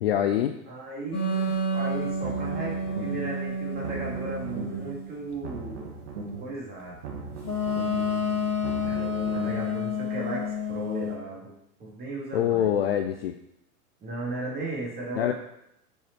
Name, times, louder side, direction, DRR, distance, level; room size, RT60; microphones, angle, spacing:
voice 1, 0.0-0.5 12.3-13.3 15.2-15.3, left 10 dB, 40° left, 7 dB, 0.5 m, -24 dB
voice 2, 0.7-5.9 6.4-7.0 8.8-11.5 11.8-12.7 14.0-15.3, right 2 dB, 20° right, -4 dB, 2.7 m, -36 dB
sound 1, 1.1-5.1 7.4-11.2, left 2 dB, 70° left, 1.8 m, -29 dB
sound 2, 2.1-3.4 3.7-5.0 5.3-6.6 6.9-9.7, right 4 dB, 45° right, 1.4 m, -39 dB
6.9 x 5.6 x 4.7 m, 0.79 s
figure-of-eight pair, 100°, 46 cm